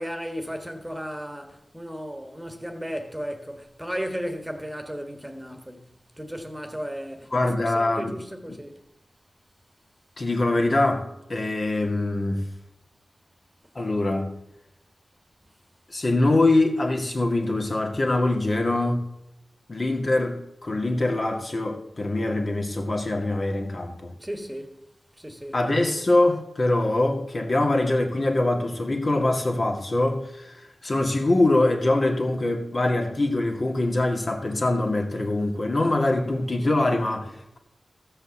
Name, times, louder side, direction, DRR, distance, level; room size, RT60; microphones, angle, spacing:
voice 1, 0.0-8.8 24.2-24.8 25.2-25.6, equal, 10° right, 1.5 m, -35 dB
voice 2, 7.3-8.2 10.2-12.5 13.8-14.4 15.9-19.1 19.7-24.1 25.5-30.5 30.8-37.6, left 2 dB, 50° left, 2.1 m, -23 dB
14.0 x 5.6 x 7.1 m
cardioid pair, 50°, 0 cm